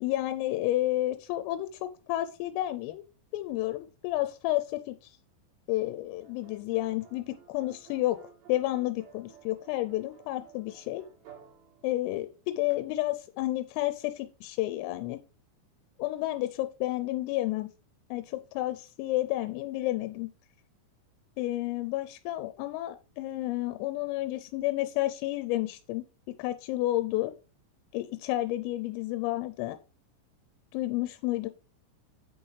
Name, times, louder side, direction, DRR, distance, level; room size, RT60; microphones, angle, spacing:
voice 1, 0.0-3.0 3.3-5.2 5.7-8.2 8.5-11.0 11.8-15.2 16.0-17.7 18.1-20.3 21.4-26.0 26.4-27.3 27.9-29.8 30.7-31.5, left 16 dB, 90° left, 10 dB, 3.2 m, -31 dB
sound 1, 6.2-12.7, right 8 dB, 80° right, 4.5 m, -55 dB
9.0 x 5.5 x 3.2 m, 0.33 s
omnidirectional pair, 5.8 m